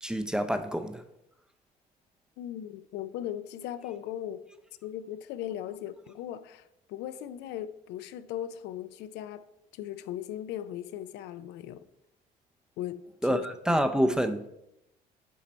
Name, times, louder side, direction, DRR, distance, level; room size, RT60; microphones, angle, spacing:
voice 1, 0.0-1.0 13.2-14.5, equal, 5° right, 0.5 m, -27 dB
voice 2, 2.4-4.4 4.8-9.4 9.7-11.8 12.8-13.0 13.3-13.7, left 11 dB, 90° left, 0.4 m, -38 dB
7.5 x 4.0 x 4.3 m
cardioid pair, 110°, 17 cm